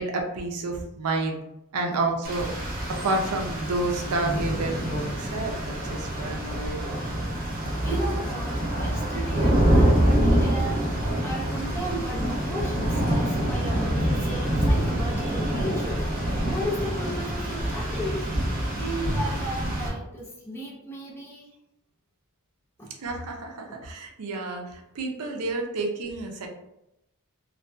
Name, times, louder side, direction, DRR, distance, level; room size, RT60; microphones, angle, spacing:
voice 1, 0.0-1.4 1.7-2.5 2.9-7.0 23.0-26.5, right 2 dB, 80° right, 2 dB, 0.5 m, -30 dB
Rain, 2.2-19.9, right 1 dB, 40° right, 0.6 m, -26 dB
voice 2, 7.8-16.1 16.5-18.3 18.7-21.5 22.8-23.0 23.7-23.8, equal, 10° left, -4 dB, 0.5 m, -35 dB
2.6 x 2.2 x 2.2 m, 0.85 s
head